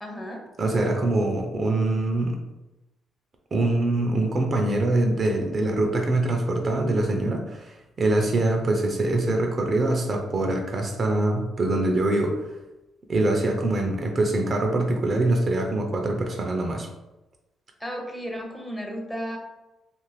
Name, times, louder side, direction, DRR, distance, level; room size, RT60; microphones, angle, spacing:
voice 1, 0.0-0.5 17.8-19.4, equal, 10° left, 1 dB, 0.6 m, -34 dB
voice 2, 0.6-2.4 3.5-12.4 13.1-16.9, right 2 dB, 40° right, 3 dB, 0.4 m, -24 dB
2.5 x 2.4 x 3.2 m, 0.99 s
cardioid pair, 90°, 0 cm